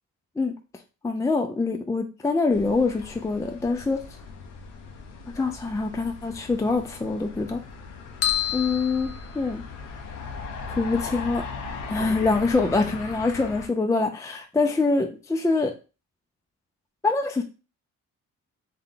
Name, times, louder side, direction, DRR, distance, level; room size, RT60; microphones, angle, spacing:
voice 1, 1.0-4.0 5.3-7.6 8.5-9.6 10.8-11.4 11.9-15.7 17.0-17.4, left 3 dB, 10° left, 0.4 m, -24 dB
sound 1, 2.5-13.7, left 4 dB, 85° left, 0.8 m, -38 dB
sound 2, 8.2-10.0, left 11 dB, 50° left, 0.7 m, -29 dB
3.5 x 2.8 x 3.7 m
cardioid pair, 90°, 30 cm